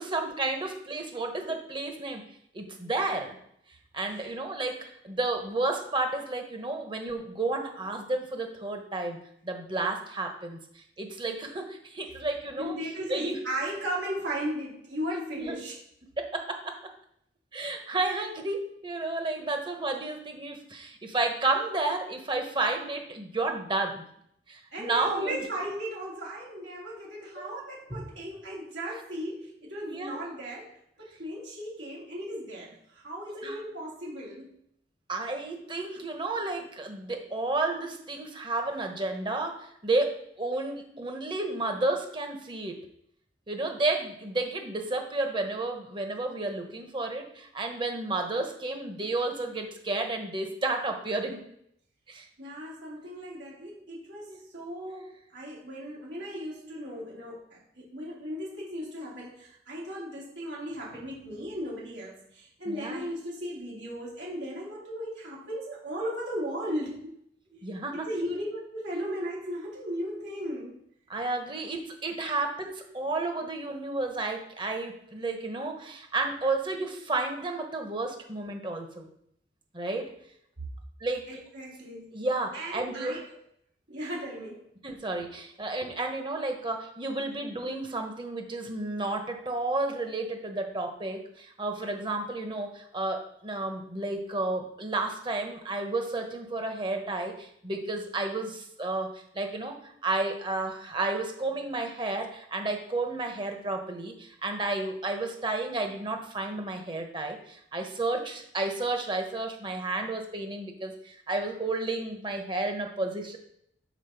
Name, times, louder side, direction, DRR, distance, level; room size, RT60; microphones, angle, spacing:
voice 1, 0.0-2.2 2.5-3.4 3.9-4.8 5.0-9.2 9.4-12.8 13.1-13.4 15.3-15.6 16.2-16.7 17.5-24.0 24.5-25.4 27.4-27.5 27.9-28.0 29.9-30.2 33.4-33.6 35.1-42.8 43.5-51.4 52.1-52.3 54.3-54.4 62.6-63.1 67.5-68.3 71.1-79.1 79.7-80.1 81.0-81.2 82.1-83.2 84.8-113.4, right 2 dB, 25° right, 4 dB, 1.1 m, -32 dB
voice 2, 12.6-15.7 24.7-34.5 52.4-67.1 67.9-70.8 72.3-72.4 81.3-82.1 82.5-83.3 83.9-84.6 85.9-86.0, equal, 90° right, -5 dB, 3.4 m, -36 dB
7.2 x 4.3 x 5.9 m, 0.70 s
head